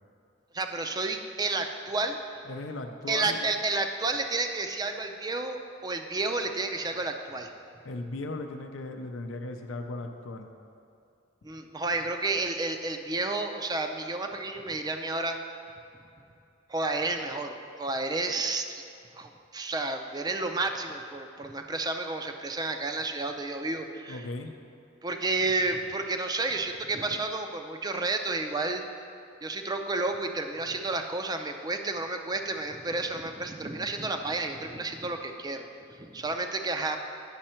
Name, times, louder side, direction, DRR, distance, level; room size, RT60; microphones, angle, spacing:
voice 1, 0.5-2.2 3.1-7.5 11.4-15.4 16.7-18.7 19.2-24.2 25.0-28.8 29.4-37.0, right 3 dB, 20° right, 5 dB, 0.5 m, -31 dB
voice 2, 2.4-3.5 7.8-10.5 24.1-24.5, left 2 dB, 80° left, 5 dB, 0.6 m, -37 dB
9.7 x 6.4 x 4.4 m, 2.6 s
head